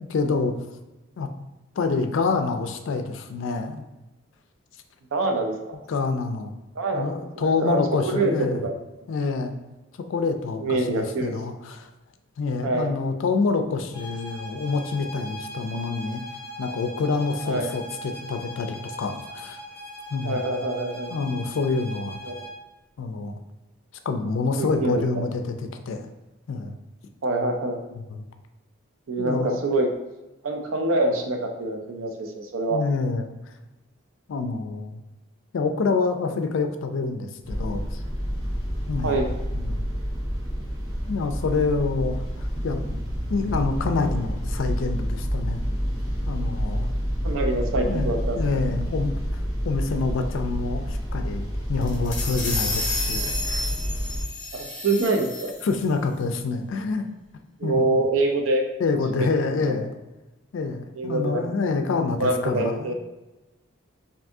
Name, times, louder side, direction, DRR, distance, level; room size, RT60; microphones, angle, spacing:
voice 1, 0.1-0.6 1.2-1.3 1.8-3.9 5.9-6.5 6.9-8.6 9.1-9.6 10.1-11.9 12.4-16.2 16.6-19.6 20.1-20.4 21.1-22.2 23.0-23.4 24.1-26.1 26.5-26.8 27.9-28.2 29.2-29.6 32.7-33.3 34.3-35.0 35.5-38.0 38.9-39.2 39.5-39.9 41.1-42.8 43.3-45.7 46.3-46.9 47.8-49.2 49.6-53.8 55.6-57.1 57.6-58.0 58.8-59.9 60.5-62.9, left 4 dB, 65° left, 6 dB, 0.3 m, -27 dB
voice 2, 5.1-5.8 6.8-8.7 10.6-11.3 12.6-13.0 17.4-17.7 20.2-21.1 22.3-22.5 24.6-25.2 27.2-27.8 29.1-29.9 30.4-32.8 39.0-39.3 47.2-48.4 54.5-55.5 57.6-58.6 59.1-59.8 61.0-61.5 62.2-62.9, right 2 dB, 75° right, 3 dB, 0.5 m, -25 dB
sound 1, 13.9-22.6, equal, 10° right, 1.4 m, -40 dB
sound 2, 37.4-54.2, equal, 45° right, 1.3 m, -28 dB
sound 3, 51.8-55.8, left 2 dB, 40° left, 0.7 m, -31 dB
2.6 x 2.6 x 3.5 m, 1.0 s
head